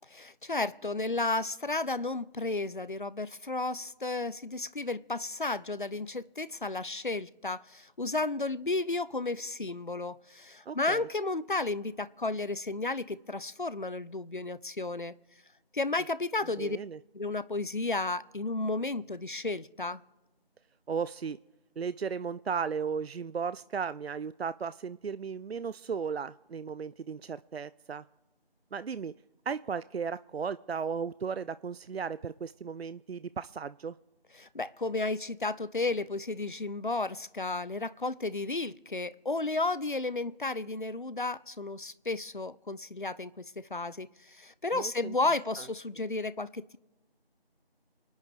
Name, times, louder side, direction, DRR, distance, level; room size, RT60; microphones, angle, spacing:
voice 1, 0.1-15.2 15.7-16.8 17.1-20.0 34.4-46.8, left 3 dB, 55° left, 0.5 m, -33 dB
voice 2, 10.7-11.1 16.6-17.0 20.9-21.4 21.8-28.0 28.7-29.1 29.5-34.0 44.7-45.1 45.6-45.7, right 6 dB, 80° right, 0.5 m, -35 dB
28.5 x 9.6 x 3.5 m
figure-of-eight pair, 180°, 30 cm